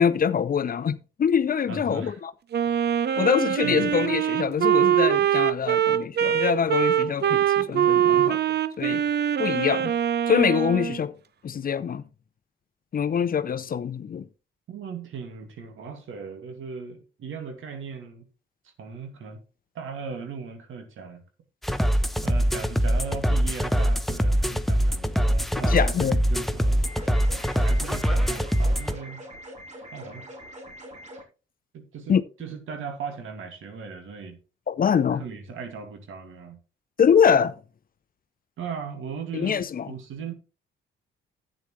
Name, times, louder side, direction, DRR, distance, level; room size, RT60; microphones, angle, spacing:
voice 1, 0.0-2.3 3.2-8.4 8.8-9.0 9.4-9.9 10.3-11.1 11.4-12.0 12.9-14.3 25.7-26.2 32.1-32.2 34.7-35.2 37.0-37.5 39.3-39.9, left 7 dB, 45° left, 0.7 m, -24 dB
voice 2, 1.7-2.2 3.1-3.3 3.6-3.9 14.7-18.3 18.6-19.4 19.7-21.2 22.2-26.9 27.6-29.2 29.9-30.3 31.7-34.4 35.1-36.6 38.6-40.3, right 5 dB, 70° right, 2.3 m, -38 dB
Wind instrument woodwind instrument, 2.5-11.0, right 10 dB, 50° right, 0.8 m, -23 dB
sound 1, 21.6-29.0, equal, ahead, 0.9 m, -23 dB
sound 2, 26.9-31.2, equal, 35° right, 3.2 m, -43 dB
11.0 x 8.8 x 3.2 m
supercardioid pair, 65°, 21 cm